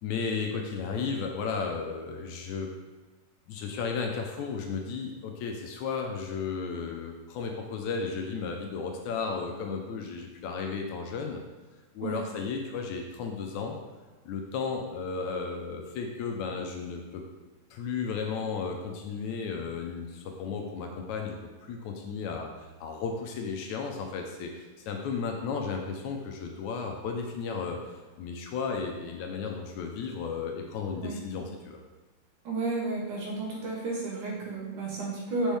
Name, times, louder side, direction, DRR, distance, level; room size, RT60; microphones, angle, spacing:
voice 1, 0.0-2.7 3.5-11.4 12.0-13.8 14.3-17.2 17.7-31.8, left 5 dB, 75° left, 2 dB, 1.9 m, -34 dB
voice 2, 32.4-35.6, right 2 dB, 75° right, -3 dB, 2.9 m, -32 dB
6.2 x 5.8 x 3.5 m, 1.3 s
omnidirectional pair, 3.6 m